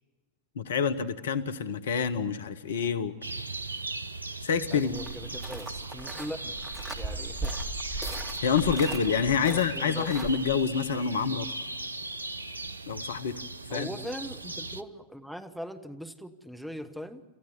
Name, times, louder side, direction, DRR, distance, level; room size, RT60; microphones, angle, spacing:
voice 1, 0.6-3.1 4.4-4.9 7.9-8.1 8.4-11.5 12.9-13.3 13.7-13.9, left 6 dB, 65° left, 13 dB, 1.0 m, -27 dB
sound 1, 3.2-14.8, right 2 dB, 80° right, 0.6 m, -38 dB
voice 2, 4.7-6.6 7.0-7.6 9.5-10.1 13.7-17.2, equal, ahead, 8 dB, 1.2 m, -40 dB
sound 2, 4.9-10.3, right 2 dB, 25° right, 2.7 m, -38 dB
27.5 x 14.5 x 8.5 m, 1.3 s
figure-of-eight pair, 90°, 0 cm